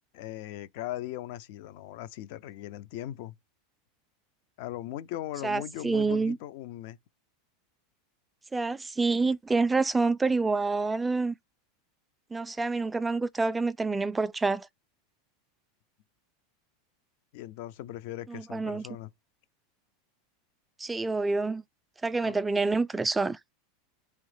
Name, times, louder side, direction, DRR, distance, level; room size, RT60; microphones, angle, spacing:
voice 1, 0.1-3.3 4.6-7.0 17.3-19.1 22.2-22.4, left 13 dB, 65° left, 0.5 m, -39 dB
voice 2, 5.4-6.4 8.5-11.3 12.3-14.7 18.3-18.8 20.8-21.6 22.0-23.4, right 3 dB, 10° right, 0.3 m, -27 dB
3.8 x 3.0 x 3.3 m
hypercardioid pair, 115°, 0 cm